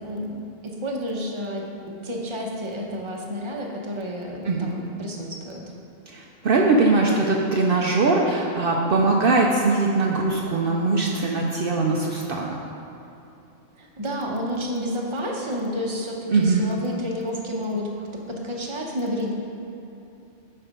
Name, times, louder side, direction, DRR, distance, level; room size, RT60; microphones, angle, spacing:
voice 1, 0.0-5.6 13.8-19.3, equal, 30° right, -1 dB, 0.9 m, -30 dB
voice 2, 6.1-12.6 16.3-16.7, right 3 dB, 60° right, -1 dB, 0.8 m, -21 dB
10.0 x 4.5 x 5.2 m, 2.9 s
omnidirectional pair, 1.1 m